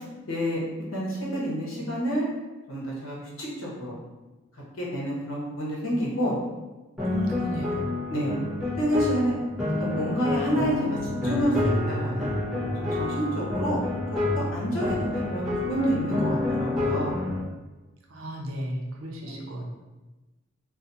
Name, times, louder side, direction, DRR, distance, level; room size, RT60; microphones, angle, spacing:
voice 1, 0.3-0.6 0.9-2.3 2.7-4.0 4.8-6.4 8.1-8.3 8.8-9.3 9.8-10.7 11.2-11.5 11.9-12.3 12.8-13.8 14.1-17.1 19.2-19.3, equal, 80° left, -5 dB, 0.9 m, -28 dB
sound 1, 7.0-17.4, left 2 dB, ahead, 0.8 m, -28 dB
voice 2, 7.0-7.9 14.9-15.0 18.1-19.7, equal, 85° right, -1 dB, 0.6 m, -34 dB
2.4 x 2.3 x 2.6 m, 1.1 s
head